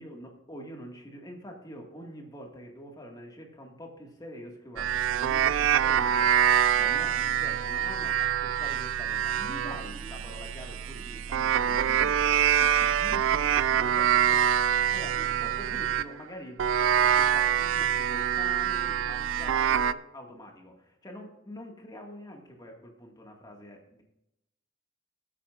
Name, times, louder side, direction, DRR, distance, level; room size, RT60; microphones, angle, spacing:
voice 1, 0.0-24.0, equal, 20° left, 1 dB, 1.9 m, -45 dB
sound 1, 4.8-16.1 16.6-19.9, right 9 dB, 70° right, 0.4 m, -25 dB
20.0 x 8.6 x 2.5 m, 0.86 s
head